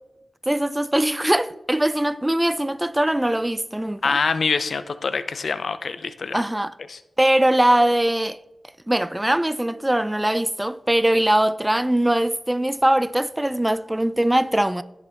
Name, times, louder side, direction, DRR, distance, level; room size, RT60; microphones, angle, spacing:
voice 1, 0.5-4.2 6.3-6.7 7.2-8.4 8.9-14.8, right 1 dB, 15° right, 0.4 m, -21 dB
voice 2, 4.0-6.4 6.9-7.0, left 4 dB, 75° left, 0.5 m, -25 dB
11.0 x 6.9 x 3.5 m
cardioid pair, 45°, 0 cm